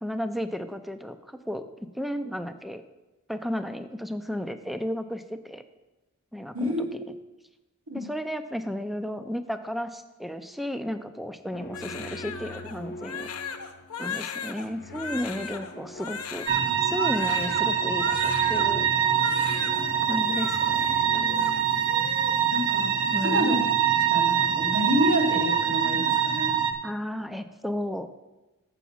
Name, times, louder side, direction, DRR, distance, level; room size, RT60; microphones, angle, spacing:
voice 1, 0.0-1.6 1.9-2.8 3.3-5.6 6.3-6.9 7.9-13.3 14.0-16.5 16.8-18.9 20.0-21.5 23.1-23.6 26.8-28.1, equal, ahead, 9 dB, 0.4 m, -33 dB
voice 2, 6.5-7.1 7.9-8.0 22.5-22.9 23.2-23.6 24.1-26.5, equal, 80° right, 0 dB, 1.9 m, -27 dB
sound 1, 11.5-22.1, left 1 dB, 45° left, 0.7 m, -43 dB
Crying sobbing, 11.7-18.7 19.0-19.8 20.1-20.6 21.1-22.4 22.7-23.0 23.3-23.8, left 6 dB, 80° left, 0.8 m, -38 dB
sound 2, 16.5-26.7, right 8 dB, 60° right, 1.0 m, -24 dB
7.1 x 6.0 x 7.0 m, 1.1 s
head